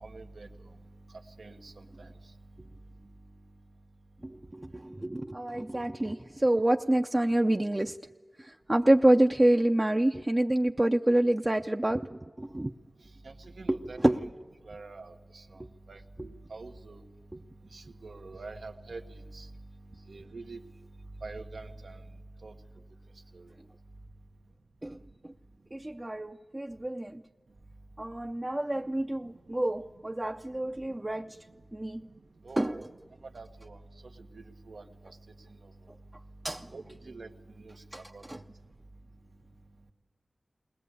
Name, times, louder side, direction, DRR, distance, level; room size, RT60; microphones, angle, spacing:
voice 1, 0.0-0.5 1.4-2.1 13.2-14.0 14.6-15.6 15.9-17.0 17.7-19.5 20.1-20.6 21.2-22.0 22.4-22.6 23.3-23.5 32.4-32.8 33.3-33.8 34.2-35.2 35.5-35.6 36.7-38.2, right 3 dB, 90° right, 5 dB, 1.4 m, -45 dB
voice 2, 4.2-8.0 8.4-12.7 13.7-14.3 24.8-25.0 25.7-27.2 28.0-31.3 31.7-32.1 32.6-32.8 36.4-36.7 37.9-38.0 38.3-38.4, right 1 dB, 25° right, 4 dB, 0.6 m, -27 dB
21.0 x 20.5 x 8.4 m, 1.5 s
wide cardioid pair, 65°, 0 cm